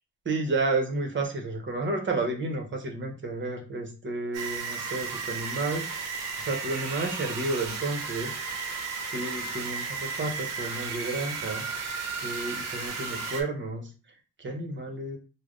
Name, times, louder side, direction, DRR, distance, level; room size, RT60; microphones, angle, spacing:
voice 1, 0.3-5.8 6.4-8.3 9.1-11.6 12.2-13.9 14.4-15.2, right 2 dB, 40° right, 3 dB, 1.1 m, -31 dB
sound 1, 4.3-13.4, right 5 dB, 60° right, 0.9 m, -34 dB
3.3 x 2.2 x 3.8 m, 0.34 s
cardioid pair, 90°, 30 cm